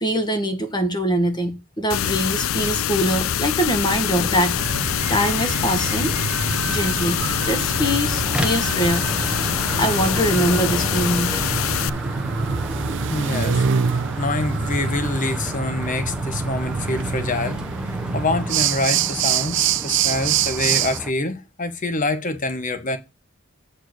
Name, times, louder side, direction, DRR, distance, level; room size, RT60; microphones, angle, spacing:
voice 1, 0.0-6.2 6.7-9.0 9.8-11.3, right 1 dB, 20° left, 1.4 m, -23 dB
sound 1, 1.9-11.9, left 10 dB, 75° left, 0.4 m, -24 dB
sound 2, 3.9-21.1, equal, 5° right, 0.7 m, -32 dB
sound 3, 4.6-21.0, right 7 dB, 60° right, 0.5 m, -26 dB
voice 2, 13.1-23.0, left 2 dB, 40° left, 1.1 m, -26 dB
8.5 x 4.5 x 6.2 m
head